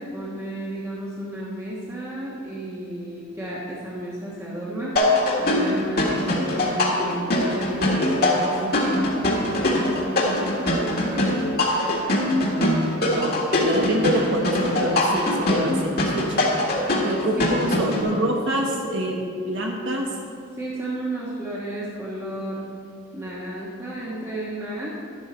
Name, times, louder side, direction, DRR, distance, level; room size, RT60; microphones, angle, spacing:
voice 1, 0.0-11.4 17.3-18.1 20.6-22.7 23.1-25.0, right 1 dB, 10° right, -7 dB, 1.4 m, -33 dB
sound 1, 5.0-18.0, left 1 dB, 45° left, 1.8 m, -22 dB
voice 2, 13.6-16.4 17.0-20.1, right 1 dB, 60° right, 0 dB, 1.2 m, -25 dB
12.0 x 11.0 x 4.3 m, 2.5 s
head